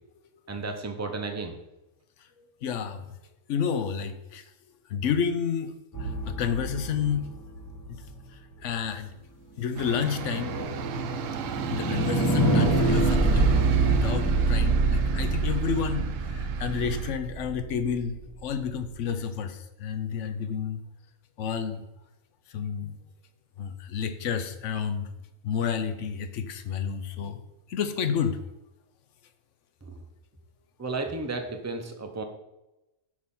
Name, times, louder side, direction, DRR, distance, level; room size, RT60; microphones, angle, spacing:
voice 1, 0.5-1.6 30.8-32.2, right 3 dB, 15° right, 5 dB, 0.5 m, -33 dB
voice 2, 2.6-3.0 3.5-4.4 4.9-5.7 6.0-7.3 7.9-8.0 8.3-9.1 9.6-10.6 11.7-13.6 13.9-18.2 18.4-20.8 21.4-21.8 22.5-23.0 23.6-25.1 25.4-27.4 27.7-28.4, left 7 dB, 70° left, 9 dB, 1.0 m, -30 dB
sound 1, 5.9-8.1 9.9-18.0, right 3 dB, 15° left, 1.3 m, -26 dB
sound 2, 9.8-17.1, right 8 dB, 75° right, 1.0 m, -34 dB
6.4 x 4.8 x 5.4 m, 0.96 s
omnidirectional pair, 1.4 m